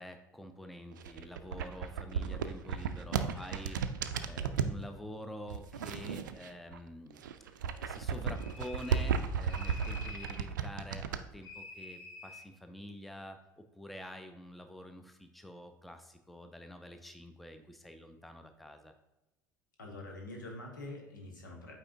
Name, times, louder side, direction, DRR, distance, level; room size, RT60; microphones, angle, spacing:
voice 1, 0.0-3.8 4.2-18.9, equal, ahead, 7 dB, 0.6 m, -47 dB
sound 1, 0.9-4.8 5.5-6.8 7.1-11.2, right 6 dB, 70° right, 0.4 m, -34 dB
sound 2, 8.3-9.2 9.5-10.4 11.4-12.5, left 4 dB, 55° left, 2.0 m, -48 dB
voice 2, 19.8-21.7, left 2 dB, 75° left, 0 dB, 1.4 m, -45 dB
8.5 x 4.4 x 2.6 m, 1.0 s
figure-of-eight pair, 65°, 11 cm